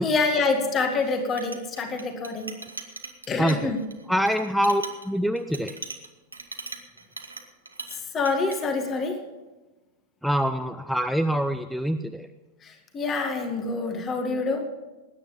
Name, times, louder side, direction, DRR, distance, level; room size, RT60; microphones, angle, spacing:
voice 1, 0.0-2.5 3.3-3.8 8.1-9.2 12.6-14.6, left 3 dB, 25° left, 6 dB, 2.0 m, -26 dB
Chink clink, 1.0-8.0 8.3-8.6, right 3 dB, 80° right, 1.3 m, -40 dB
voice 2, 3.4-3.7 4.1-5.8 10.2-12.3, equal, ahead, 10 dB, 0.6 m, -25 dB
20.0 x 9.5 x 5.3 m, 1.1 s
figure-of-eight pair, 90°, 0 cm